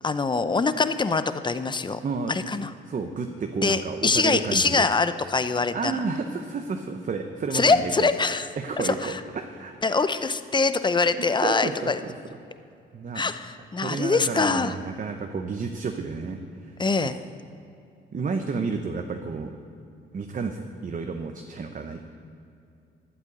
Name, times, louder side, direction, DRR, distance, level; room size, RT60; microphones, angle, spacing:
voice 1, 0.0-2.0 2.3-2.7 3.6-5.9 7.5-8.5 9.0-9.2 9.8-12.0 13.1-14.8 16.8-17.2, left 4 dB, 25° left, 12 dB, 0.7 m, -24 dB
voice 2, 2.0-2.3 2.9-4.9 5.7-8.1 8.6-9.8 11.1-12.1 12.9-13.2 13.8-17.2 18.1-19.6 20.1-22.0, right 4 dB, 40° right, 5 dB, 1.0 m, -31 dB
12.5 x 8.2 x 8.5 m, 2.5 s
cardioid pair, 90°, 20 cm